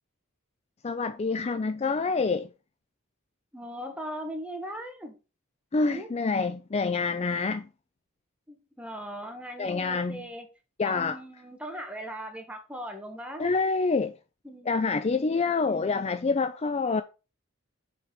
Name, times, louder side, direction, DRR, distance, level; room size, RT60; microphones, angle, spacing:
voice 1, 0.8-2.5 5.7-7.7 9.6-10.2 10.8-11.2 13.4-14.1 14.7-17.0, left 4 dB, 30° left, 0.4 m, -27 dB
voice 2, 3.5-5.2 5.8-6.1 8.5-10.5 10.8-13.5 14.4-14.9 15.6-16.1, equal, 5° right, 1.6 m, -39 dB
6.8 x 4.6 x 5.7 m
head